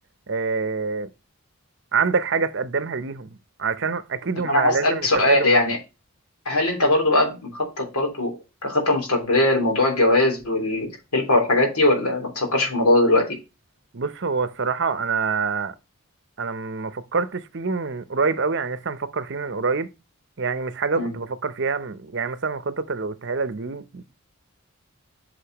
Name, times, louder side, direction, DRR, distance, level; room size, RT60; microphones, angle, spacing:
voice 1, 0.3-1.1 1.9-5.6 13.9-15.7 16.4-19.9 20.4-24.0, right 4 dB, 55° right, 0.7 m, -26 dB
voice 2, 4.4-5.8 6.4-13.4 21.0-21.1, left 1 dB, 85° left, 3.1 m, -20 dB
8.5 x 5.2 x 2.9 m
head